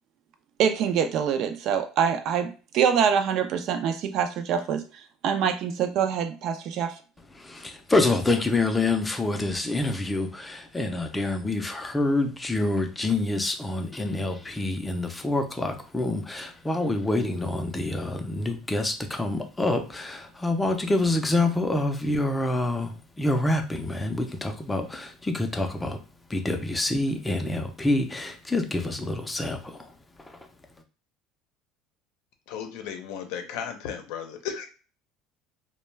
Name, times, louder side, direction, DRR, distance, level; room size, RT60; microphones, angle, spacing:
voice 1, 0.6-4.8 5.2-6.9, right 7 dB, 55° right, 0.4 m, -25 dB
voice 2, 7.4-26.0 26.3-29.8, left 2 dB, 10° left, 0.5 m, -27 dB
voice 3, 32.5-34.7, left 8 dB, 75° left, 0.6 m, -35 dB
2.2 x 2.1 x 3.2 m
cardioid pair, 130°, 0 cm